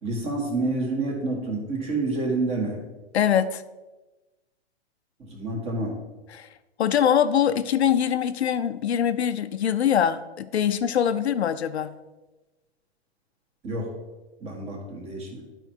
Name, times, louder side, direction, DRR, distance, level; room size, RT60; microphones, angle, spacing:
voice 1, 0.0-2.8 5.2-6.0 13.6-13.9 14.4-15.4, right 2 dB, 20° right, 1 dB, 1.5 m, -28 dB
voice 2, 3.1-3.6 6.3-6.5 6.8-11.9, left 9 dB, 80° left, 12 dB, 0.6 m, -23 dB
9.8 x 4.6 x 4.5 m, 1.1 s
hypercardioid pair, 150°, 32 cm